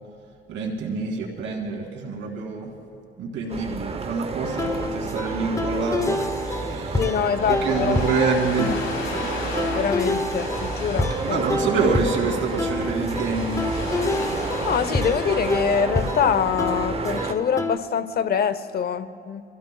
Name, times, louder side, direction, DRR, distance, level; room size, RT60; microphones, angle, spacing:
voice 1, 0.5-2.7 3.2-9.0 11.2-13.7, right 4 dB, 75° right, -1 dB, 2.8 m, -27 dB
sound 1, 3.5-17.3, right 4 dB, 30° right, 0.9 m, -31 dB
sound 2, 4.4-17.8, left 2 dB, 15° left, 0.8 m, -29 dB
voice 2, 6.9-8.0 9.7-11.4 14.6-19.4, left 7 dB, 50° left, 13 dB, 0.7 m, -24 dB
Ocean, 7.4-15.8, left 3 dB, 80° left, 3.6 m, -35 dB
26.5 x 15.5 x 2.3 m, 2.6 s
cardioid pair, 90°, 20 cm